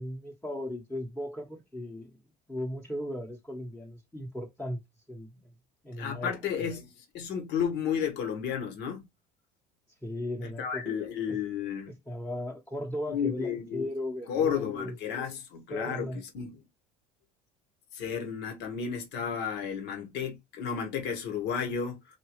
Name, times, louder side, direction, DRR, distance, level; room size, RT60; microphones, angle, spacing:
voice 1, 0.0-2.2 2.5-4.8 5.1-5.3 5.8-6.3 10.0-11.0 11.3-11.4 11.9-14.9 15.7-16.2, left 1 dB, 5° left, 1.2 m, -37 dB
voice 2, 6.0-9.1 10.6-11.9 13.1-13.9 14.3-16.1 16.3-16.6 17.9-22.0, left 7 dB, 65° left, 1.6 m, -32 dB
4.8 x 2.7 x 3.2 m
supercardioid pair, 85°, 19 cm